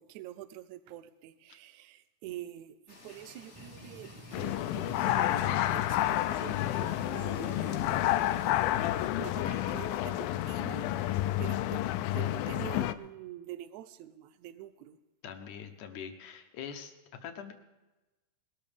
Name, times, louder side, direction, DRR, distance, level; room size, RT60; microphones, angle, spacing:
voice 1, 0.0-11.8 12.1-15.0, right 13 dB, 75° right, 14 dB, 1.8 m, -46 dB
sound 1, 2.9-8.5, left 2 dB, 20° left, 1.8 m, -54 dB
sound 2, 3.5-8.9, equal, 20° right, 0.7 m, -53 dB
sound 3, 4.3-12.9, left 14 dB, 85° left, 2.3 m, -30 dB
voice 2, 15.2-16.9 17.2-17.5, left 7 dB, 70° left, 6 dB, 2.3 m, -43 dB
21.0 x 13.0 x 3.5 m, 1.1 s
omnidirectional pair, 4.0 m